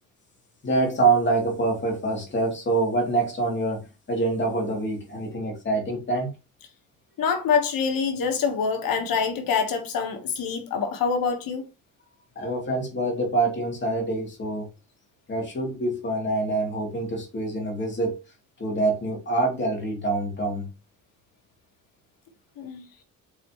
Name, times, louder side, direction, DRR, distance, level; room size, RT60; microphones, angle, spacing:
voice 1, 0.6-6.3 12.3-14.7 15.3-18.2 18.6-20.7, right 2 dB, 30° left, 3.0 m, -25 dB
voice 2, 7.2-11.6 22.6-22.8, left 6 dB, 75° left, 1.4 m, -25 dB
7.2 x 4.3 x 3.0 m
cardioid pair, 135°, 34 cm